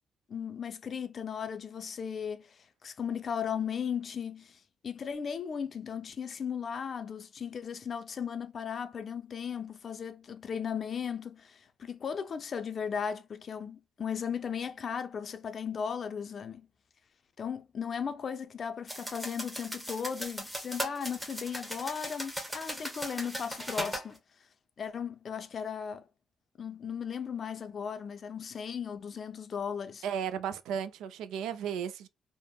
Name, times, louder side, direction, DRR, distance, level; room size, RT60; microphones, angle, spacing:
voice 1, 0.3-16.7 17.4-24.2 24.8-26.0 26.6-30.0, left 7 dB, 50° left, 0.4 m, -36 dB
sound 1, 18.9-24.1, equal, 10° right, 0.9 m, -38 dB
voice 2, 30.0-32.1, right 8 dB, 90° right, 0.3 m, -34 dB
3.3 x 2.0 x 2.2 m
cardioid pair, 90°, 0 cm